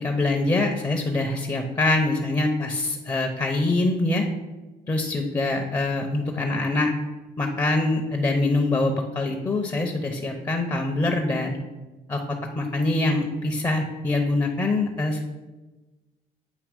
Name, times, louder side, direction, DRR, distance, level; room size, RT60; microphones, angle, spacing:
voice 1, 0.0-4.3 4.9-6.9 7.4-11.6 12.1-12.2 12.5-15.3, left 2 dB, 20° left, 2 dB, 0.6 m, -24 dB
8.3 x 2.8 x 5.1 m, 1.2 s
cardioid pair, 110°, 17 cm